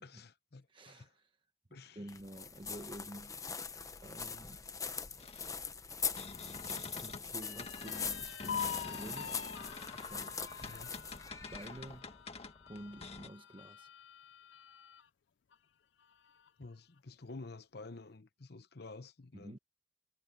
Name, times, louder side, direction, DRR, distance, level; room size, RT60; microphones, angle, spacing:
voice 1, 0.0-1.1 1.7-2.0 10.7-11.0 16.6-19.6, left 3 dB, 65° left, 1.0 m, -50 dB
voice 2, 0.7-1.4 1.7-3.4 4.0-4.6 7.0-9.5 9.9-10.4 11.5-12.1 12.7-13.9 19.3-19.6, right 1 dB, 30° right, 1.1 m, -49 dB
sound 1, 2.1-12.0, left 5 dB, 20° left, 0.9 m, -42 dB
sound 2, 5.2-7.3 7.6-13.3, left 3 dB, 35° left, 1.6 m, -48 dB
sound 3, 7.4-15.1 15.5-15.6 16.0-16.7, left 8 dB, 85° left, 0.5 m, -46 dB
head